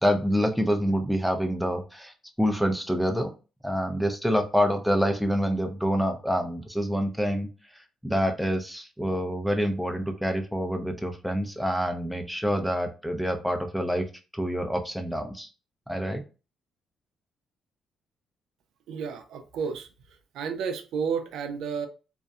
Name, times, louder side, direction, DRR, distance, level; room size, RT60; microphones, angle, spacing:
voice 1, 0.0-3.3 3.6-7.5 8.0-14.1 14.3-15.5 15.9-16.2, equal, ahead, 4 dB, 0.5 m, -27 dB
voice 2, 18.9-19.9 20.3-21.9, right 6 dB, 80° right, 7 dB, 0.4 m, -31 dB
2.6 x 2.0 x 2.3 m, 0.33 s
cardioid pair, 90°, 0 cm